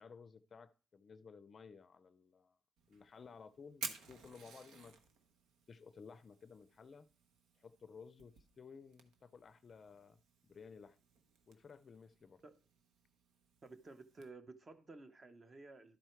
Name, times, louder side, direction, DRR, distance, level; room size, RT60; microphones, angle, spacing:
voice 1, 0.0-2.6 2.9-5.0 5.7-7.1 7.6-10.2 10.5-11.0 11.5-12.4, left 5 dB, 40° left, 0.5 m, -56 dB
Fire, 2.8-14.3, right 5 dB, 80° right, 1.1 m, -54 dB
voice 2, 13.6-16.0, right 3 dB, 35° right, 1.0 m, -54 dB
12.0 x 4.5 x 4.5 m
cardioid pair, 90°, 0 cm